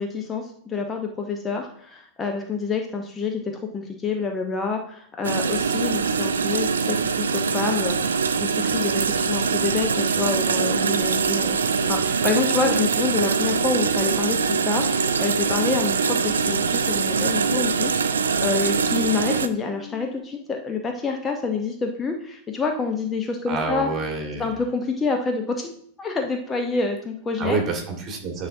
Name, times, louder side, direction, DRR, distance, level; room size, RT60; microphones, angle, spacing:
voice 1, 0.0-11.6 11.9-23.9 24.4-25.7 26.0-27.6, left 4 dB, 20° left, 3 dB, 0.7 m, -27 dB
sound 1, 5.2-19.5, right 5 dB, 70° right, 0.4 m, -23 dB
sound 2, 13.4-20.2, left 8 dB, 70° left, 1.0 m, -47 dB
voice 2, 23.5-24.6 27.4-28.5, right 3 dB, 30° right, 2 dB, 1.6 m, -27 dB
9.6 x 4.1 x 2.7 m, 0.65 s
figure-of-eight pair, 90°, 0 cm